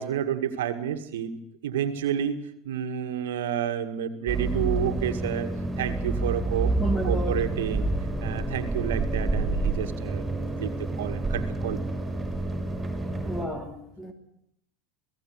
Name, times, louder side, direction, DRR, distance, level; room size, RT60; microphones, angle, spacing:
voice 1, 0.0-1.3 1.6-2.4 2.7-5.5 5.8-6.7 7.0-7.9 8.2-11.8, right 9 dB, 80° right, 1.9 m, -30 dB
sound 1, 4.3-13.4, right 2 dB, 15° right, 6.5 m, -28 dB
voice 2, 6.8-7.4 13.2-14.1, equal, 15° left, 3.2 m, -31 dB
28.0 x 17.5 x 6.4 m
hypercardioid pair, 85°, 0 cm